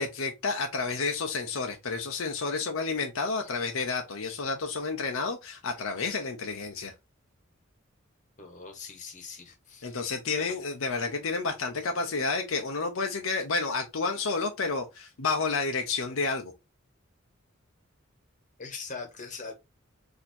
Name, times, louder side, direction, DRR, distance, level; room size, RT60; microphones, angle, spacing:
voice 1, 0.0-6.9 9.8-16.5, left 4 dB, 75° left, 0.7 m, -30 dB
voice 2, 8.4-10.0 10.4-10.5 18.6-19.5, left 4 dB, 35° left, 1.2 m, -41 dB
4.2 x 2.9 x 2.7 m
head